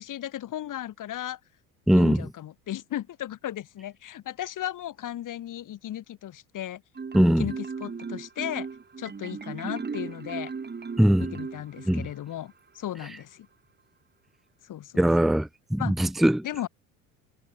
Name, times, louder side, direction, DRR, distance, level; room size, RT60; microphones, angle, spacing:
voice 1, 0.0-1.4 1.9-6.8 7.4-8.7 9.0-10.5 11.2-13.5 14.6-15.0 15.8-15.9 16.4-16.7, left 12 dB, 50° left, 5.4 m, -35 dB
voice 2, 1.9-2.3 7.1-7.5 11.0-11.3 11.9-12.1 15.0-16.4, equal, ahead, 0.7 m, -21 dB
Marimba xylophone, 7.0-12.1, right 5 dB, 25° right, 5.0 m, -36 dB
hypercardioid pair, 65°, 41 cm